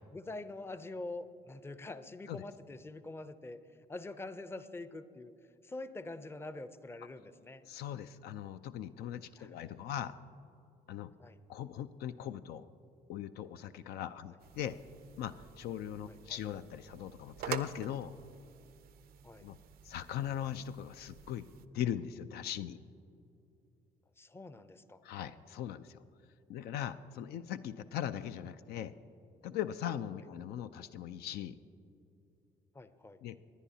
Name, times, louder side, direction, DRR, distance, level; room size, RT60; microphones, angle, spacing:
voice 1, 0.1-3.6 3.9-5.3 5.6-7.6 9.4-9.6 11.2-11.4 16.1-16.4 19.2-19.5 24.2-25.0 30.1-30.2 32.7-33.2, left 2 dB, 15° left, 12 dB, 0.5 m, -45 dB
voice 2, 7.7-10.2 10.9-11.1 11.5-12.7 13.1-14.8 15.2-18.2 19.4-19.6 19.8-21.5 21.7-22.8 25.0-26.0 26.5-28.9 29.4-31.6 33.2-33.4, left 10 dB, 70° left, 11 dB, 0.4 m, -39 dB
sound 1, 14.4-21.7, right 10 dB, 60° right, 0.5 m, -48 dB
19.0 x 10.0 x 2.8 m, 2.6 s
supercardioid pair, 75°, 17 cm